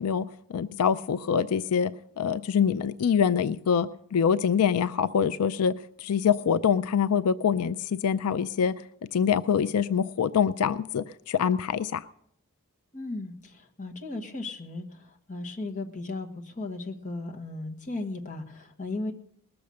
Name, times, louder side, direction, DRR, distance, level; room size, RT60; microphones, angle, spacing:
voice 1, 0.0-1.9 2.2-5.7 6.0-8.7 9.1-12.0, left 7 dB, 90° left, 13 dB, 0.4 m, -25 dB
voice 2, 12.9-19.1, left 2 dB, 35° left, 3 dB, 1.5 m, -36 dB
20.0 x 7.0 x 6.4 m, 0.72 s
head